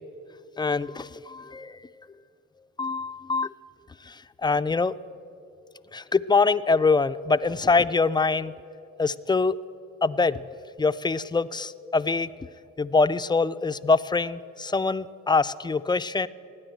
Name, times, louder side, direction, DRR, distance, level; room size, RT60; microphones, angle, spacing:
voice 1, 0.6-2.1 2.8-3.5 4.1-4.9 5.9-8.5 9.0-9.6 10.0-10.5 10.8-12.3 12.8-16.3, left 4 dB, 15° left, 13 dB, 0.3 m, -24 dB
17.5 x 9.7 x 7.8 m, 2.7 s
cardioid pair, 90°, 30 cm